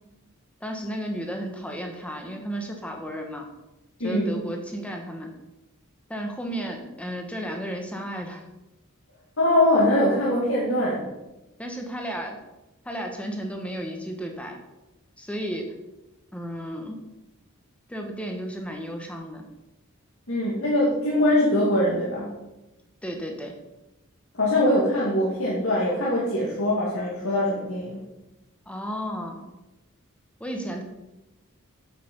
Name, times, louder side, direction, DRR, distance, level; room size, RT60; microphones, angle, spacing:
voice 1, 0.6-3.5 4.0-5.3 6.1-8.4 11.6-12.4 12.8-14.6 15.2-15.7 16.3-17.0 17.9-19.5 23.0-23.6 28.6-29.4 30.4-30.8, equal, 5° left, 3 dB, 1.2 m, -33 dB
voice 2, 4.0-4.3 9.4-11.0 20.3-22.3 24.3-28.0, left 1 dB, 70° left, -6 dB, 2.2 m, -22 dB
8.5 x 7.7 x 5.3 m, 1.0 s
head